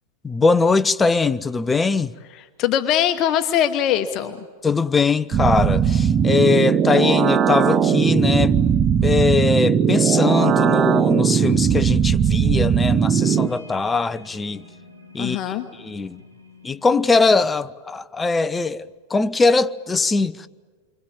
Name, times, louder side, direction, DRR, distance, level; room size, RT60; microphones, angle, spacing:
voice 1, 0.2-2.1 4.6-8.5 9.0-14.6 15.1-16.2 16.6-20.5, left 4 dB, 15° left, 0.8 m, -21 dB
voice 2, 2.6-4.4 15.2-15.7, left 10 dB, 35° left, 1.2 m, -21 dB
sound 1, 5.3-13.5, right 7 dB, 25° right, 0.9 m, -18 dB
sound 2, 10.4-17.4, right 1 dB, 80° right, 3.1 m, -46 dB
29.0 x 25.0 x 7.5 m
figure-of-eight pair, 90°, 0 cm